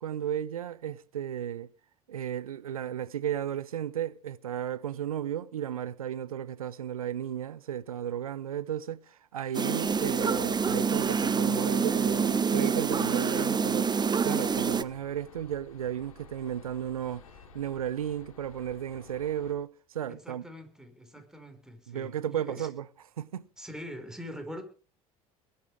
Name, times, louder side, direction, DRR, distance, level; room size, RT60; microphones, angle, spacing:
voice 1, 0.0-1.7 2.1-17.2 17.5-20.4 21.9-22.9 23.2-23.5, right 10 dB, 90° right, 0.7 m, -34 dB
sound 1, 9.5-14.8, right 5 dB, 25° right, 0.9 m, -27 dB
sound 2, 9.8-19.5, left 5 dB, 85° left, 3.1 m, -52 dB
voice 2, 20.2-22.7 23.6-24.6, equal, 5° right, 4.8 m, -43 dB
21.5 x 8.4 x 4.8 m
hypercardioid pair, 65°, 18 cm